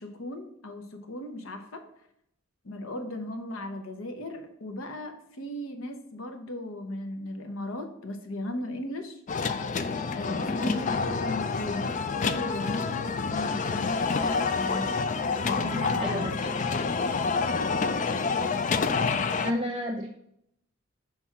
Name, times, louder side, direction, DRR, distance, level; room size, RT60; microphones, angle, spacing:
voice 1, 0.0-1.8 2.6-9.2 10.1-14.9 15.5-16.4, left 1 dB, 75° left, 6 dB, 0.9 m, -37 dB
sound 1, 9.3-19.5, left 4 dB, 35° left, 0.3 m, -28 dB
voice 2, 15.7-16.3 19.4-20.1, equal, 25° right, 1 dB, 0.5 m, -31 dB
5.8 x 3.5 x 5.7 m, 0.75 s
head